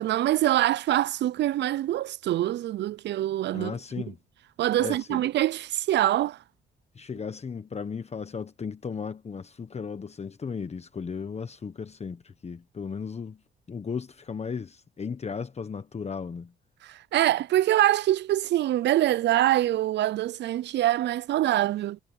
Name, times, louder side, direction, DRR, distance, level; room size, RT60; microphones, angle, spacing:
voice 1, 0.0-3.7 4.6-6.4 16.8-22.0, right 13 dB, 60° right, 0.4 m, -24 dB
voice 2, 3.5-4.2 4.8-5.2 6.9-13.4 13.7-16.5, left 6 dB, 35° left, 1.2 m, -35 dB
cardioid pair, 90°, 20 cm